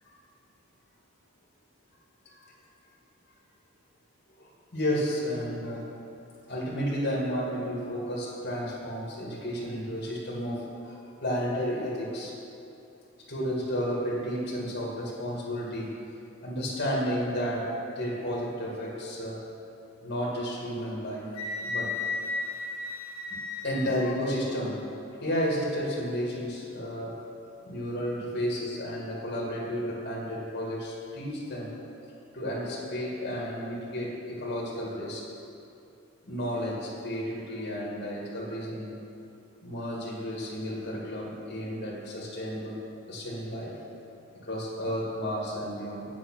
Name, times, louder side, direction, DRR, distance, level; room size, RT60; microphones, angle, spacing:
voice 1, 4.4-5.9 6.5-12.3 13.3-15.9 16.4-17.6 18.0-19.4 20.0-21.3 21.6-21.9 23.6-24.8 25.2-27.1 27.6-31.7 32.3-35.2 36.2-38.9 39.6-42.8 43.1-43.7 44.4-46.1, equal, 50° left, -5 dB, 1.9 m, -32 dB
Wind instrument woodwind instrument, 21.3-24.1, left 3 dB, 75° left, 1.0 m, -34 dB
8.6 x 7.2 x 6.0 m, 2.7 s
head